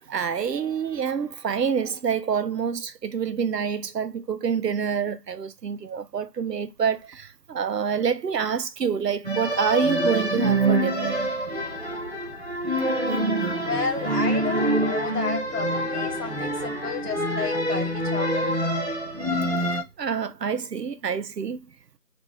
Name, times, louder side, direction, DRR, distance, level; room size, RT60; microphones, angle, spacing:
voice 1, 0.1-11.2 20.0-21.6, right 7 dB, 85° right, 0.6 m, -27 dB
sound 1, 9.2-19.8, right 1 dB, 45° right, 0.5 m, -26 dB
voice 2, 13.6-18.7, left 5 dB, 70° left, 0.9 m, -32 dB
2.5 x 2.1 x 3.0 m
figure-of-eight pair, 165°, 48 cm